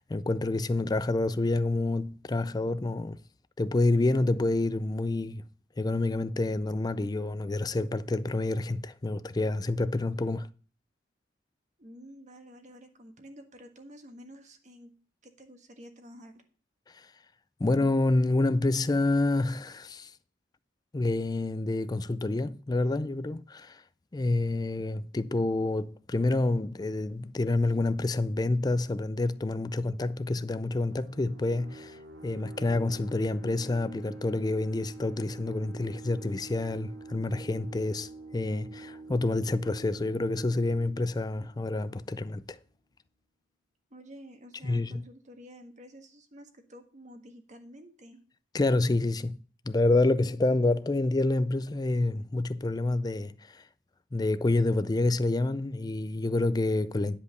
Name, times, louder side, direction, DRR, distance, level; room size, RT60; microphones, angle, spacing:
voice 1, 0.0-3.2 3.6-5.4 5.8-10.5 17.6-20.1 20.9-23.8 24.1-32.0 32.2-42.6 44.6-45.0 48.5-49.4 49.7-53.6 54.1-57.2, left 2 dB, 20° left, 0.4 m, -28 dB
voice 2, 11.8-14.9 15.2-16.4 43.9-48.2, equal, 40° right, 1.5 m, -50 dB
sound 1, 30.9-42.2, right 3 dB, 80° right, 2.8 m, -47 dB
10.5 x 5.3 x 6.5 m
head